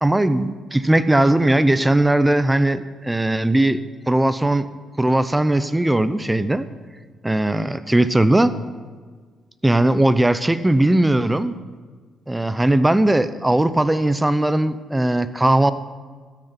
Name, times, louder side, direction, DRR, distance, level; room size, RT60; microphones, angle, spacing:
voice 1, 0.0-3.8 4.1-4.7 5.0-6.7 7.2-8.5 9.6-11.6 12.3-15.7, right 1 dB, 10° right, 13 dB, 0.7 m, -18 dB
13.0 x 6.6 x 9.8 m, 1.5 s
cardioid pair, 90°, 0 cm